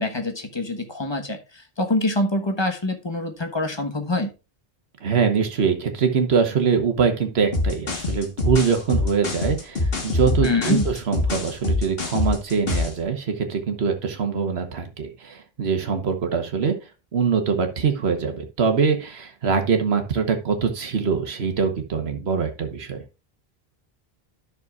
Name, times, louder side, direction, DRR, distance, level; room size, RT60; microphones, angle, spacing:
voice 1, 0.0-4.3 10.4-10.8, left 2 dB, 25° left, 5 dB, 1.2 m, -25 dB
voice 2, 5.0-16.7 17.1-23.0, right 6 dB, 85° right, 6 dB, 1.4 m, -23 dB
sound 1, 7.5-13.0, left 2 dB, 65° left, 1.7 m, -25 dB
12.0 x 6.2 x 2.4 m, 0.31 s
omnidirectional pair, 1.0 m